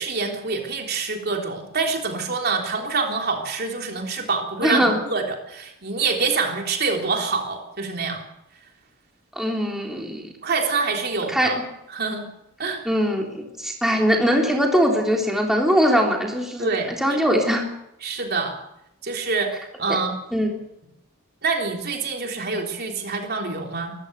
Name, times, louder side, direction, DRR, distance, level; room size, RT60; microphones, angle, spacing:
voice 1, 0.0-8.2 10.4-11.6 11.9-12.2 12.6-12.8 16.6-16.9 18.0-18.6 19.0-20.1 21.4-23.9, right 4 dB, 50° right, 2 dB, 3.6 m, -26 dB
voice 2, 4.6-5.0 9.4-10.3 11.3-11.5 12.9-17.7 19.9-20.0 20.3-20.5, equal, ahead, 0 dB, 3.6 m, -21 dB
23.0 x 15.0 x 8.2 m, 0.82 s
head